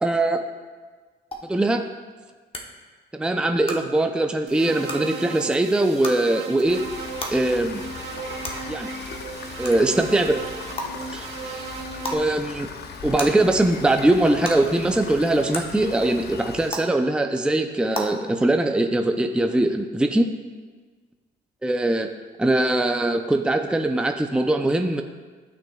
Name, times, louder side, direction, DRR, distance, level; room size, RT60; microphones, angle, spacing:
voice 1, 0.0-0.4 1.5-1.8 3.1-6.8 7.3-7.8 8.7-8.9 9.6-10.4 11.1-11.6 12.1-12.7 13.0-20.3 21.6-22.1 22.4-25.0, right 1 dB, 5° right, 5 dB, 0.5 m, -21 dB
sound 1, 1.3-1.4 2.5-2.6 3.6-3.7 4.8-5.0 6.0-6.1 7.2-7.3 8.4-8.5 9.6-9.8 10.8-10.9 12.0-12.2 13.2-13.3 14.4-14.5 15.5-15.6 16.7-16.8 17.9-18.0, left 1 dB, 25° left, 1.2 m, -30 dB
sound 2, 4.5-12.1, right 5 dB, 80° right, 1.1 m, -36 dB
Rain, 6.7-16.7, left 5 dB, 55° left, 0.7 m, -38 dB
13.0 x 6.0 x 2.3 m, 1.4 s
cardioid pair, 90°, 20 cm